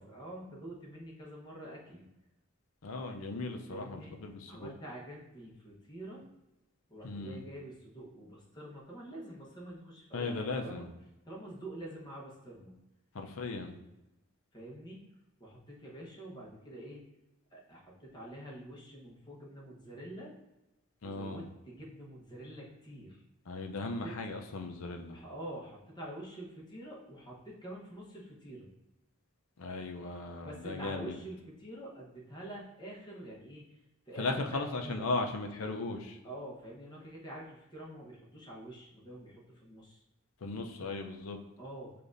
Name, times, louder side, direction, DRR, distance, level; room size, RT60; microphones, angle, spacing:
voice 1, 0.0-2.1 3.7-4.2 4.5-6.2 6.9-10.9 11.2-12.7 14.5-15.1 15.4-17.0 17.5-20.3 21.0-23.2 23.8-24.1 25.1-28.7 30.4-33.7 34.1-35.1 36.2-40.0 41.6-41.9, right 1 dB, 20° left, -4 dB, 1.0 m, -46 dB
voice 2, 2.8-4.7 7.0-7.4 10.1-10.9 13.1-13.7 21.0-21.4 23.5-25.2 29.6-31.2 34.2-36.2 40.4-41.4, left 3 dB, 75° left, 4 dB, 0.5 m, -37 dB
6.7 x 2.5 x 2.5 m, 0.98 s
head